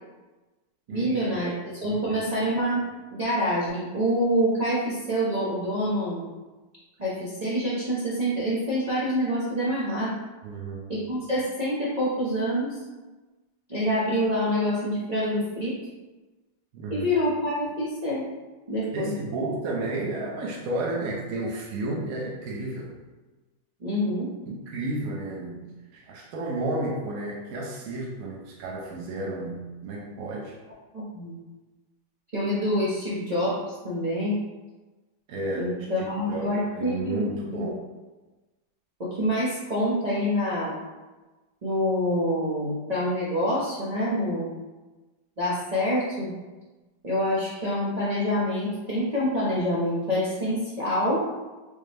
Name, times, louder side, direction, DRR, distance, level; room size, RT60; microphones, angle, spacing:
voice 1, 0.9-2.8 3.1-6.2 7.0-10.1 10.9-12.8 13.7-15.8 16.9-18.2 18.7-19.1 23.8-24.3 30.9-31.3 32.3-34.4 35.6-37.2 37.5-37.7 39.0-40.8 41.6-44.5 45.4-46.3 47.0-51.2, equal, 85° right, -10 dB, 0.3 m, -26 dB
voice 2, 1.9-2.3 10.4-10.9 16.7-17.1 18.9-23.0 24.5-25.6 25.9-30.6 35.3-37.8, right 2 dB, 70° right, -2 dB, 0.8 m, -32 dB
5.2 x 2.1 x 3.2 m, 1.2 s
omnidirectional pair, 2.0 m